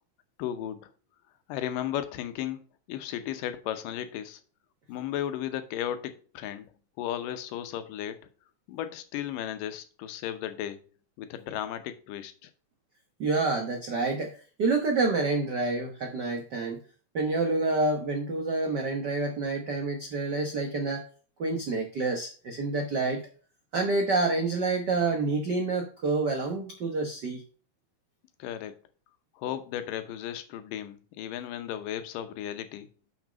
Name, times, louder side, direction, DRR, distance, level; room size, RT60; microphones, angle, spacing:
voice 1, 0.4-0.9 1.5-4.4 4.9-6.7 7.0-8.2 8.7-10.8 11.2-12.5 28.4-28.7 29.4-32.9, left 11 dB, 85° left, 2.5 m, -35 dB
voice 2, 13.2-16.8 17.1-21.0 21.4-23.2 23.7-27.4, right 3 dB, 90° right, 0.9 m, -28 dB
6.5 x 6.2 x 5.1 m
omnidirectional pair, 3.8 m